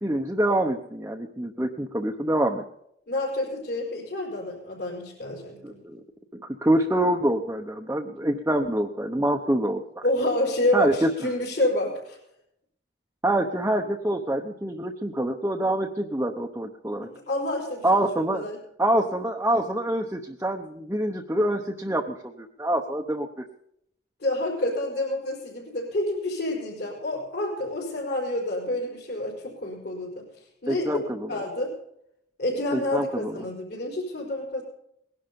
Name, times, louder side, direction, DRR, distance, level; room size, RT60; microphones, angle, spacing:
voice 1, 0.0-2.6 5.6-6.0 6.3-10.0 10.7-11.1 13.2-17.1 17.8-18.4 18.8-23.4 30.7-31.0 32.7-33.3, right 1 dB, 10° right, 1 dB, 0.9 m, -26 dB
voice 2, 3.1-5.8 10.0-12.2 17.0-18.0 18.3-18.6 24.2-30.3 30.6-31.0 31.3-31.7 32.4-34.6, left 1 dB, 60° left, -6 dB, 5.0 m, -28 dB
20.5 x 11.5 x 5.3 m, 0.74 s
head